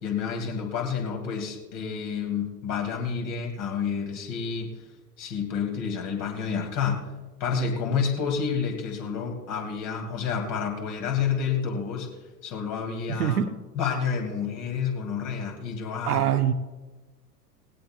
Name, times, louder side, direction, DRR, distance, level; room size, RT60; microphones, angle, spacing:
voice 1, 0.0-4.7 5.2-7.0 7.4-12.1 12.4-13.4 13.8-16.2, left 6 dB, 40° left, 3 dB, 2.5 m, -29 dB
voice 2, 13.1-13.6 16.1-16.5, right 9 dB, 70° right, 10 dB, 0.9 m, -24 dB
19.0 x 17.0 x 2.3 m, 1.2 s
figure-of-eight pair, 85°, 48 cm